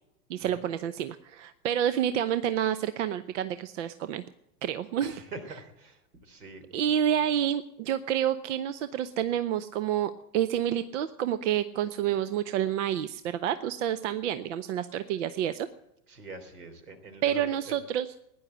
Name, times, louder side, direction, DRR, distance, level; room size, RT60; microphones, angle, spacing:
voice 1, 0.3-4.2 4.6-5.1 6.7-15.7 17.2-18.1, right 10 dB, 50° right, 13 dB, 0.9 m, -29 dB
voice 2, 5.0-7.0 16.1-17.8, right 2 dB, 75° right, 8 dB, 3.5 m, -45 dB
16.5 x 10.5 x 7.9 m, 0.85 s
figure-of-eight pair, 100°, 46 cm